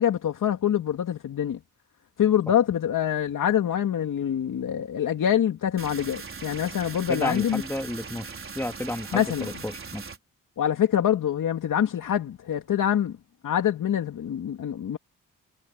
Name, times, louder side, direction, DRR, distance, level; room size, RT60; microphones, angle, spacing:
voice 1, 0.0-1.6 2.2-7.6 9.1-9.5 10.6-13.1 13.4-15.0, left 10 dB, 75° left, 2.5 m, -25 dB
sound 1, 5.8-10.2, right 5 dB, 40° right, 4.4 m, -40 dB
voice 2, 7.1-10.1, left 1 dB, 10° left, 2.4 m, -32 dB
cardioid pair, 95°, 32 cm